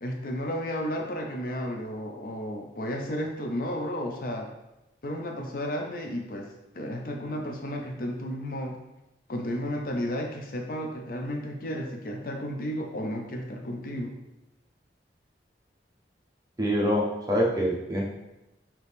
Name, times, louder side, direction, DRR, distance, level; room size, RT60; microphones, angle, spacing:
voice 1, 0.0-4.5 5.0-8.8 9.3-14.1, equal, 50° left, 3 dB, 0.4 m, -33 dB
voice 2, 16.6-18.0, equal, 20° right, -3 dB, 0.7 m, -25 dB
4.1 x 2.9 x 3.4 m, 0.95 s
head